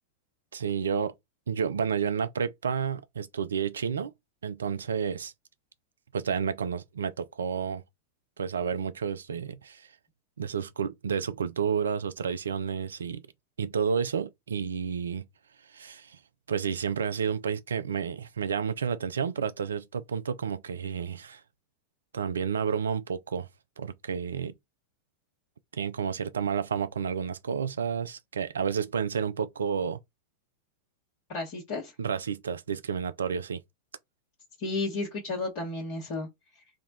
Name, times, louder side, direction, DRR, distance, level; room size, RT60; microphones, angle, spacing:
voice 1, 0.5-1.1 1.5-4.1 4.4-5.3 6.1-7.8 8.4-9.9 10.4-13.2 13.6-15.2 15.7-16.2 16.5-21.4 22.1-23.5 23.8-24.5 25.7-30.0 32.0-33.6, right 6 dB, 70° right, 0.4 m, -30 dB
voice 2, 31.3-31.9 34.6-36.3, left 3 dB, 45° left, 1.2 m, -32 dB
3.6 x 2.3 x 4.0 m
figure-of-eight pair, 90°, 0 cm